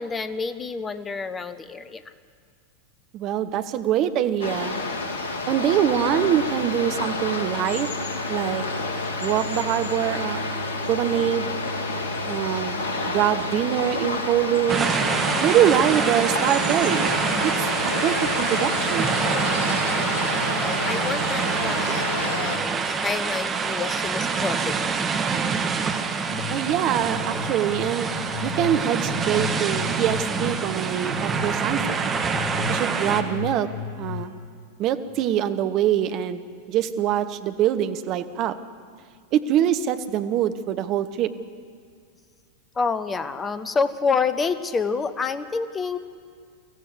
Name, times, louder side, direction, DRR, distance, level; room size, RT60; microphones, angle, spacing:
voice 1, 0.0-2.0 20.2-25.0 42.7-46.0, left 5 dB, 20° left, 12 dB, 1.1 m, -28 dB
voice 2, 3.1-4.8 5.5-7.9 8.3-8.6 9.2-10.4 10.9-11.5 12.3-12.8 13.0-15.0 15.4-17.1 17.4-19.1 26.3-28.1 28.4-32.0 32.7-33.7 34.0-34.3 34.8-36.4 36.7-38.6 39.3-41.3, right 11 dB, 40° right, 10 dB, 1.1 m, -24 dB
sound 1, 4.4-22.6, left 2 dB, 65° left, 2.2 m, -29 dB
sound 2, 14.7-33.2, right 5 dB, 20° right, 1.7 m, -26 dB
sound 3, 26.3-34.3, left 6 dB, 45° left, 4.0 m, -35 dB
24.5 x 15.0 x 8.0 m, 2.1 s
figure-of-eight pair, 90°, 0 cm